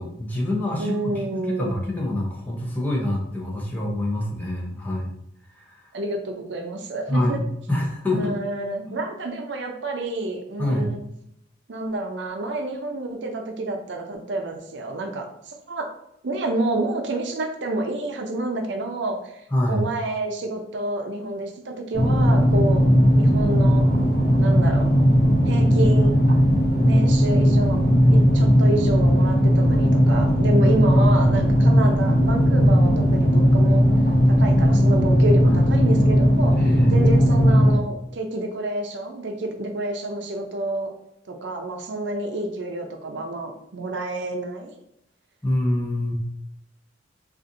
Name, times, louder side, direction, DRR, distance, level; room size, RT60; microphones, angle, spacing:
voice 1, 0.0-5.1 5.6-5.8 7.1-8.3 8.9-9.0 10.6-10.9 19.5-19.8 31.0-31.9 35.4-35.6 36.6-37.4 45.4-46.1, left 1 dB, 10° left, -2 dB, 0.6 m, -26 dB
voice 2, 0.8-1.8 5.9-7.4 8.1-11.0 11.7-15.9 16.2-19.2 19.7-22.8 23.2-23.9 24.4-24.9 25.5-26.2 26.8-27.8 28.1-33.9 34.3-36.6 36.9-40.9 41.3-44.8, right 2 dB, 65° right, 4 dB, 0.5 m, -28 dB
sound 1, 21.9-37.8, equal, 55° left, 0.7 m, -17 dB
4.0 x 2.4 x 2.6 m, 0.78 s
head